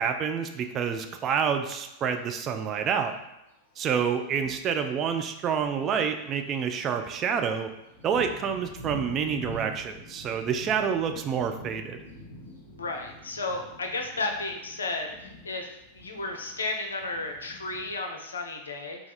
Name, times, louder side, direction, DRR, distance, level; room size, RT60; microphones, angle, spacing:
voice 1, 0.0-3.1 3.8-7.7 8.0-12.0, right 7 dB, 30° right, 6 dB, 0.3 m, -28 dB
Thunder, 2.0-2.1 3.1-3.2 3.7-3.8 4.2-18.0, left 1 dB, 90° right, 1.2 m, -46 dB
voice 2, 12.8-15.7 15.9-19.1, left 2 dB, 70° left, 3 dB, 0.5 m, -33 dB
3.3 x 2.3 x 4.0 m, 0.89 s
figure-of-eight pair, 90°, 0 cm